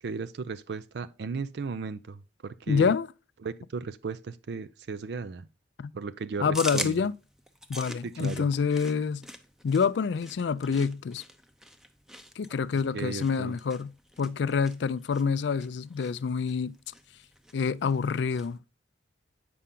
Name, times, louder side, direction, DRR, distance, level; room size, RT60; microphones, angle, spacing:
voice 1, 0.0-2.9 3.4-5.5 5.9-7.1 8.0-8.5 12.9-13.5, right 4 dB, 60° right, 0.4 m, -36 dB
voice 2, 2.7-3.1 5.8-5.9 6.4-7.1 7.7-9.2 9.6-11.2 12.4-13.9 14.2-16.7 17.5-18.6, left 5 dB, 65° left, 0.4 m, -27 dB
sound 1, 6.5-18.6, equal, 5° right, 0.6 m, -43 dB
8.4 x 5.6 x 3.7 m
head